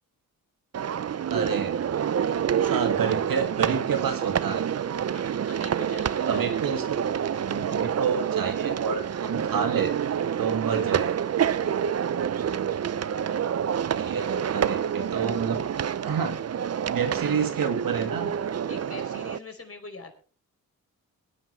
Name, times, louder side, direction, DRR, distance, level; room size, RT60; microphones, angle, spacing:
sound 1, 0.7-19.4, right 8 dB, 45° right, 0.6 m, -28 dB
voice 1, 1.3-1.7 2.7-4.6 6.3-7.0 7.3-10.0 10.4-11.1 13.9-15.6 16.0-16.4 16.9-18.3, right 6 dB, 70° right, 6 dB, 2.2 m, -29 dB
voice 2, 5.1-6.4 11.4-11.8 18.7-20.1, left 3 dB, 40° left, 5 dB, 4.8 m, -43 dB
24.0 x 10.0 x 3.3 m, 0.39 s
cardioid pair, 65°, 36 cm